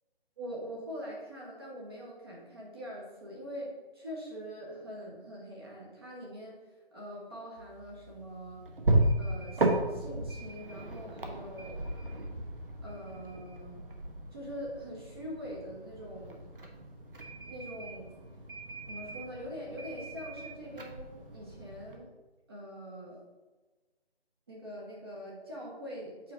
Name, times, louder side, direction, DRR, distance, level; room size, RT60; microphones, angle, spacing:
voice 1, 0.4-6.6 6.9-8.6 9.2-11.9 12.8-13.8 14.3-16.4 17.5-18.1 18.9-22.1 22.5-23.2 24.5-26.3, equal, 25° right, -4 dB, 1.2 m, -43 dB
sound 1, 7.6-22.0, right 1 dB, 60° right, 1.2 m, -35 dB
7.4 x 4.9 x 3.8 m, 1.2 s
figure-of-eight pair, 170°, 31 cm